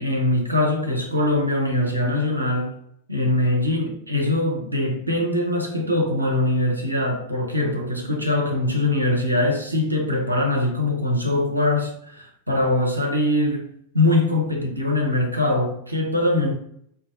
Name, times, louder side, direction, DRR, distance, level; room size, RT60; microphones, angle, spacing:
voice 1, 0.0-2.7 3.1-13.7 13.9-16.5, left 1 dB, 85° right, 0.6 m, -22 dB
3.9 x 2.4 x 2.6 m
figure-of-eight pair, 90°, 0 cm